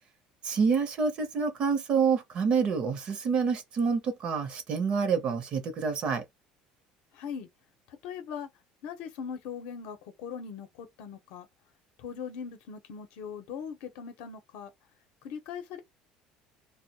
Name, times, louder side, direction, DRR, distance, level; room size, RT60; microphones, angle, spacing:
voice 1, 0.4-6.2, right 5 dB, 40° right, 0.6 m, -27 dB
voice 2, 7.1-7.5 7.9-8.5 8.8-11.5 12.0-14.7 15.2-15.8, left 7 dB, 65° left, 0.6 m, -40 dB
2.2 x 2.0 x 2.8 m
cardioid pair, 160°, 3 cm